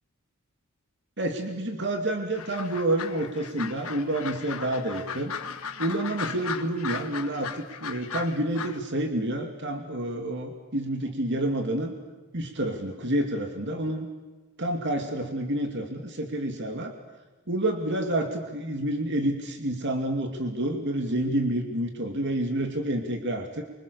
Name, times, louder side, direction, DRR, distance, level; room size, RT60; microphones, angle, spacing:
voice 1, 1.2-5.3 5.8-11.9 12.3-14.1 14.6-16.9 17.5-23.7, right 1 dB, 55° right, 4 dB, 2.8 m, -29 dB
sound 1, 2.3-8.8, left 6 dB, 75° left, 1.7 m, -37 dB
28.0 x 25.0 x 7.0 m, 1.2 s
head